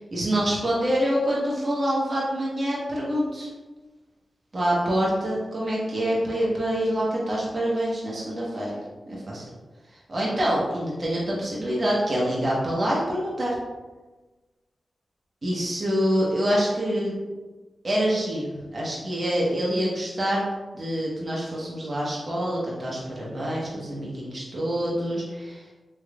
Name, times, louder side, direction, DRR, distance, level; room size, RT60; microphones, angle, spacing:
voice 1, 0.1-3.5 4.5-8.8 9.1-9.4 10.1-13.5 15.4-17.2 17.8-20.4 20.7-25.6, equal, 50° right, -5 dB, 0.9 m, -26 dB
3.4 x 3.1 x 2.4 m, 1.2 s
cardioid pair, 40°, 0 cm